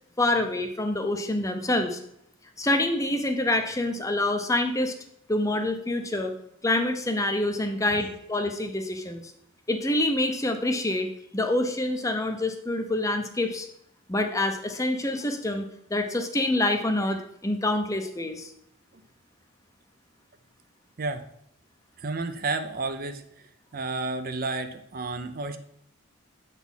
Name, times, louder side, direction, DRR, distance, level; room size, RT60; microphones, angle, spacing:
voice 1, 0.2-2.0 2.6-4.9 5.3-6.3 6.6-9.3 9.7-13.7 14.1-15.6 15.9-18.5, left 1 dB, 15° left, 5 dB, 0.6 m, -26 dB
voice 2, 22.0-23.2 23.7-25.6, right 3 dB, 40° right, 8 dB, 0.5 m, -31 dB
8.2 x 4.1 x 5.5 m, 0.74 s
head